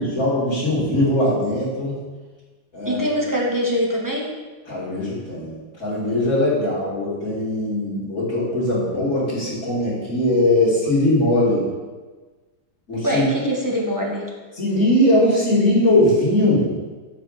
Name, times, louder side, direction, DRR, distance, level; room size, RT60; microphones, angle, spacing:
voice 1, 0.0-2.0 2.7-3.1 4.7-11.6 12.9-13.3 14.5-16.7, left 1 dB, 40° left, -10 dB, 2.6 m, -20 dB
voice 2, 2.8-4.3 13.0-14.3, equal, 10° right, -2 dB, 1.0 m, -23 dB
7.6 x 5.0 x 6.3 m, 1.3 s
omnidirectional pair, 2.2 m